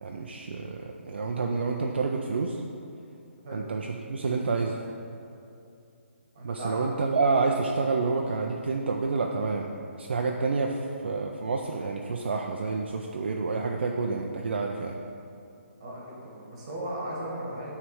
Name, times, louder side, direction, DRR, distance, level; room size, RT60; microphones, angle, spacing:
voice 1, 0.0-2.6 3.5-4.8 6.4-15.0, right 4 dB, 55° right, 1 dB, 0.4 m, -29 dB
voice 2, 6.3-6.9 15.8-17.7, right 1 dB, 25° right, -5 dB, 1.3 m, -36 dB
8.9 x 3.3 x 4.7 m, 2.5 s
hypercardioid pair, 175°, 7 cm